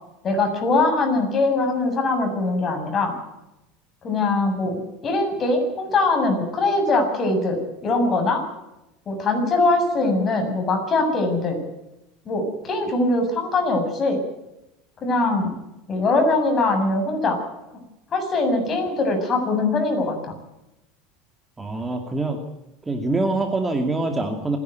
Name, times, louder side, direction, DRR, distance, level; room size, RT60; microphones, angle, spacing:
voice 1, 0.2-3.1 4.0-8.4 9.1-11.6 12.3-14.2 15.0-15.5 15.9-17.4 18.1-20.3, left 2 dB, 30° left, 4 dB, 7.5 m, -22 dB
voice 2, 21.6-22.4 22.8-24.6, right 2 dB, 15° right, 5 dB, 2.5 m, -24 dB
27.0 x 11.0 x 9.4 m, 0.92 s
supercardioid pair, 120°, 0 cm